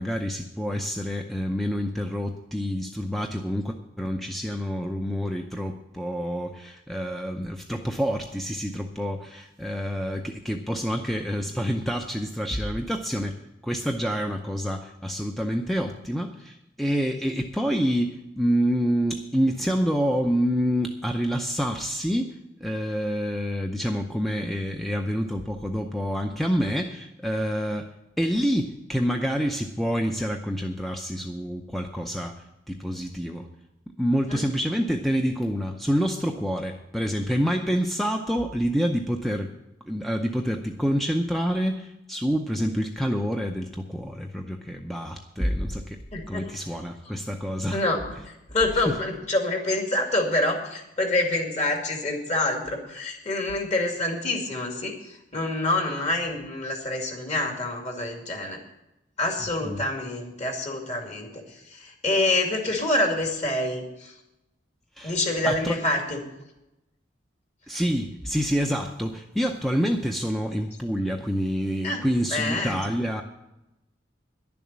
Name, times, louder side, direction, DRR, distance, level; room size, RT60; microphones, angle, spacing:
voice 1, 0.0-13.4 13.6-27.9 28.2-33.5 34.0-39.5 39.9-46.0 46.3-47.8 48.9-49.0 59.6-59.8 65.0-65.2 65.5-65.8 67.7-73.2, equal, ahead, 3 dB, 0.6 m, -27 dB
voice 2, 46.1-46.8 47.7-58.6 59.2-64.1 65.0-66.2 71.8-72.0 72.3-72.8, left 2 dB, 40° left, 2 dB, 2.3 m, -27 dB
11.0 x 7.1 x 8.6 m, 0.91 s
head